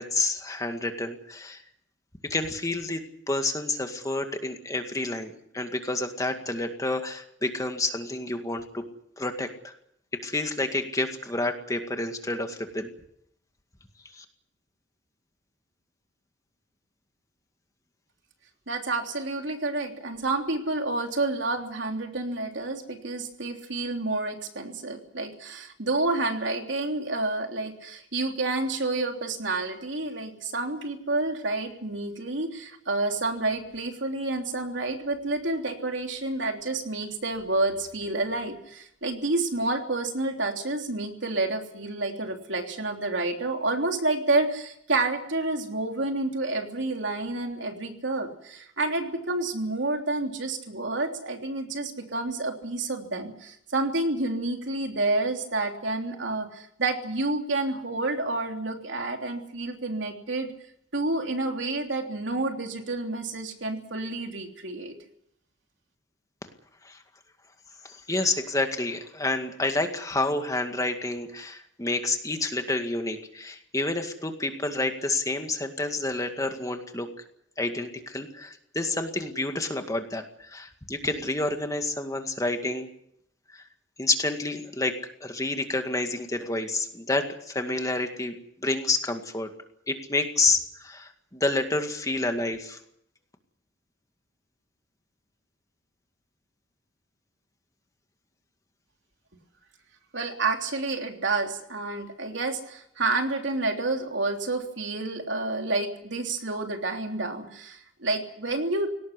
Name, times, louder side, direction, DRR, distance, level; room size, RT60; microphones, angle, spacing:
voice 1, 0.0-1.6 2.2-8.8 9.2-9.7 10.2-12.9 14.2-14.3 66.8-67.0 67.8-77.1 77.6-82.9 83.5-83.6 84.0-84.9 85.2-88.3 88.6-89.5 89.9-92.8, left 2 dB, 20° left, 5 dB, 2.1 m, -29 dB
voice 2, 18.7-60.5 60.9-65.0 100.1-108.9, right 2 dB, 75° right, 3 dB, 3.3 m, -29 dB
19.0 x 18.0 x 9.9 m, 0.72 s
head